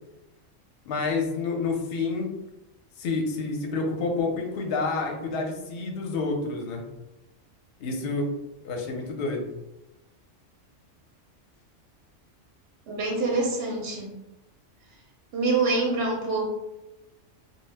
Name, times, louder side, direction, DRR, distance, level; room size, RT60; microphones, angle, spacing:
voice 1, 0.9-2.3 3.0-6.8 7.8-8.3 8.6-9.5, left 3 dB, 60° left, 1 dB, 0.7 m, -28 dB
voice 2, 12.9-14.2 15.3-16.5, right 3 dB, 65° right, -1 dB, 0.7 m, -26 dB
2.1 x 2.0 x 3.2 m, 0.95 s
omnidirectional pair, 1.3 m